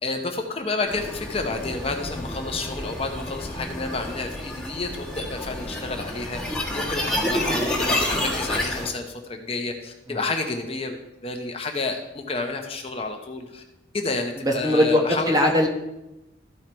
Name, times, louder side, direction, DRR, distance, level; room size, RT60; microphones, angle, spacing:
voice 1, 0.0-11.0 11.2-13.6 13.9-15.5, left 3 dB, 30° left, 3 dB, 0.9 m, -30 dB
sound 1, 0.9-8.9, left 1 dB, 5° left, 1.4 m, -29 dB
voice 2, 14.4-15.7, left 1 dB, 20° right, 2 dB, 1.1 m, -20 dB
13.5 x 4.6 x 4.5 m, 0.94 s
head